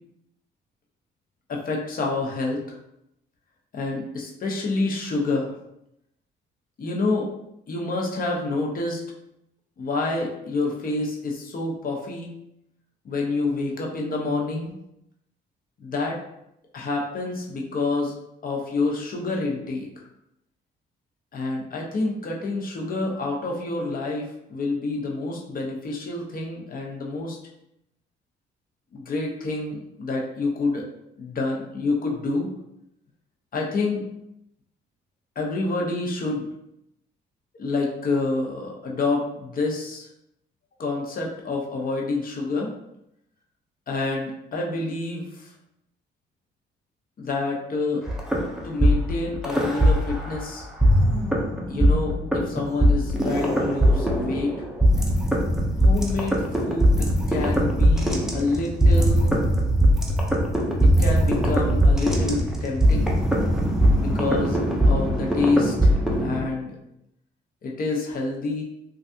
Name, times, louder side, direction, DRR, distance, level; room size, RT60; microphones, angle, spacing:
voice 1, 1.5-2.8 3.7-5.5 6.8-7.3 7.7-9.0 9.8-12.3 13.0-14.7 15.8-16.2 16.7-18.2 18.4-19.9 21.3-27.4 28.9-30.8 31.2-32.5 33.5-34.1 35.4-36.5 37.6-40.1 40.8-42.7 43.9-45.5 47.2-48.0 48.6-50.7 51.7-54.5 55.8-59.4 60.8-63.1 64.0-64.6 64.9-66.8 67.6-68.6, left 3 dB, 45° left, -1 dB, 0.8 m, -28 dB
sound 1, 48.1-50.4 50.8-66.4, equal, ahead, 0.5 m, -20 dB
3.3 x 2.4 x 2.7 m, 0.80 s
cardioid pair, 90°, 20 cm